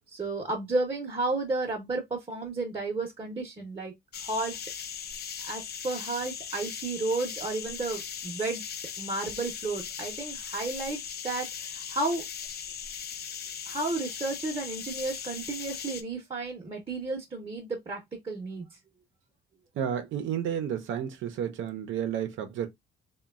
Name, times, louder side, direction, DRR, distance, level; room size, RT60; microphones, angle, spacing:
voice 1, 0.1-4.5 5.4-8.6 9.0-11.0 11.2-12.2 13.7-18.7, right 2 dB, 25° right, 0.7 m, -32 dB
sound 1, 4.1-16.0, left 8 dB, 55° left, 0.5 m, -38 dB
voice 2, 19.8-22.7, right 9 dB, 75° right, 0.6 m, -31 dB
3.0 x 2.2 x 2.2 m
cardioid pair, 90°, 20 cm